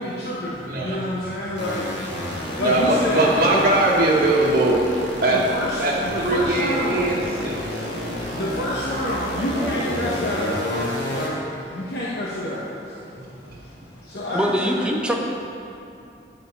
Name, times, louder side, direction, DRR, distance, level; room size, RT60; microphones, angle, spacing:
voice 1, 0.0-3.7 5.3-7.1 7.6-14.9, left 1 dB, 70° left, -5 dB, 0.9 m, -29 dB
voice 2, 0.6-1.6 2.4-5.4 5.8-7.6 9.3-10.1 13.2-13.6, right 2 dB, 55° right, -6 dB, 1.1 m, -22 dB
sound 1, 1.6-11.3, left 1 dB, 85° left, 1.7 m, -30 dB
voice 3, 14.3-15.1, equal, 5° right, 0 dB, 0.6 m, -22 dB
9.4 x 5.2 x 5.7 m, 2.7 s
head